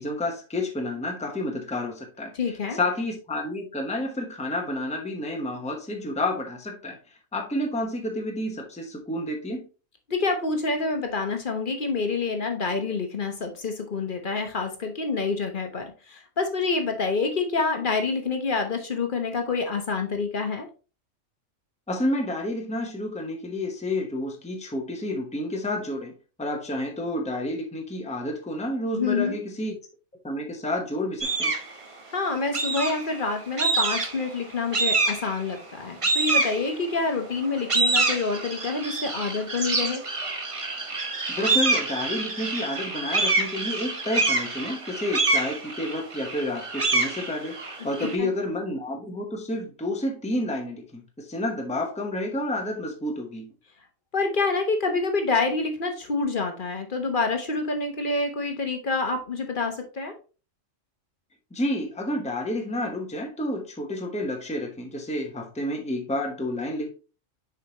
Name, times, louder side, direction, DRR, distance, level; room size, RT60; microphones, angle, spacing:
voice 1, 0.0-2.3 2.7-7.0 7.3-9.7 21.9-26.1 26.4-29.8 30.2-31.5 41.3-53.5 61.5-66.9, left 1 dB, 5° left, 0.9 m, -30 dB
voice 2, 2.3-2.8 10.1-20.7 28.9-29.4 32.1-40.0 48.0-48.3 54.1-60.1, left 4 dB, 45° left, 1.1 m, -27 dB
sound 1, 31.2-31.7 32.5-33.2 33.6-34.3 34.7-35.4 36.0-37.0 37.4-48.2, right 3 dB, 30° right, 0.9 m, -26 dB
6.7 x 5.0 x 2.9 m
omnidirectional pair, 1.3 m